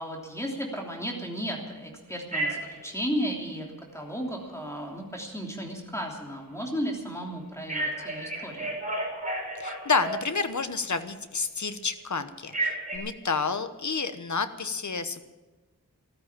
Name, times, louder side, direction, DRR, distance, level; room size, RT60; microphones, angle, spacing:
voice 1, 0.0-8.7, equal, 10° left, 0 dB, 3.1 m, -34 dB
Telephone, 2.3-2.8 7.7-10.6 12.5-13.0, right 2 dB, 20° right, 5.1 m, -32 dB
voice 2, 9.6-15.2, left 4 dB, 55° left, 11 dB, 1.1 m, -30 dB
14.0 x 13.5 x 7.4 m, 1.2 s
wide cardioid pair, 80°, 35 cm